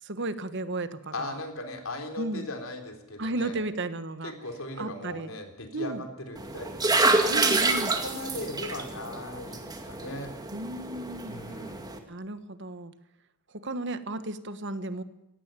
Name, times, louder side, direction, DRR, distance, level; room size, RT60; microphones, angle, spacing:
voice 1, 0.0-1.4 2.2-2.4 3.2-4.3 4.8-5.3 5.7-6.0 7.3-7.9 10.5-11.4 12.1-12.9 13.5-15.0, right 2 dB, 55° right, 12 dB, 1.4 m, -34 dB
voice 2, 1.1-3.6 4.2-7.3 7.7-10.3 11.3-11.9, left 1 dB, 70° left, 5 dB, 3.7 m, -38 dB
sound 1, 6.4-12.0, right 3 dB, 20° right, 2.1 m, -28 dB
18.0 x 16.0 x 9.2 m, 0.87 s
head